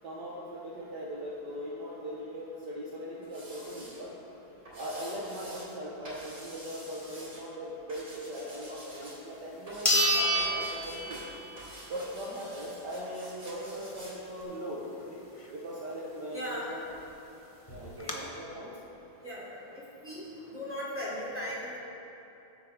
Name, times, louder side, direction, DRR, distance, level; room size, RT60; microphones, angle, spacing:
voice 1, 0.0-4.1 4.7-11.2 11.9-15.2 15.5-16.9 17.7-18.7 20.4-20.5, equal, 55° right, -5 dB, 1.8 m, -39 dB
sound 1, 3.2-4.0 4.6-5.7 6.0-7.4 7.9-9.2 9.7-11.3 11.6-14.1 14.4-14.5, right 1 dB, 35° right, 3.5 m, -47 dB
sound 2, 9.0-9.1 9.8-11.6 12.0-12.1 16.7-16.8 17.0-17.1 17.7-18.1, equal, 40° left, 0.4 m, -28 dB
voice 2, 16.3-16.7 18.0-18.2 19.2-20.2 20.5-21.8, equal, 5° right, -7 dB, 2.8 m, -38 dB
20.0 x 7.8 x 3.6 m, 2.9 s
omnidirectional pair, 2.3 m